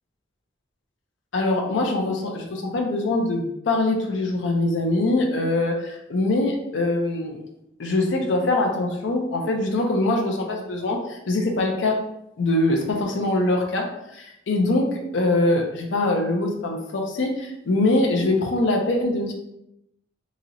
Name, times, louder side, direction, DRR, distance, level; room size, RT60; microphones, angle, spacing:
voice 1, 1.3-7.4 7.8-12.0 12.4-13.9 14.1-19.3, left 2 dB, 70° left, 1 dB, 0.5 m, -23 dB
3.0 x 2.8 x 2.5 m, 0.82 s
head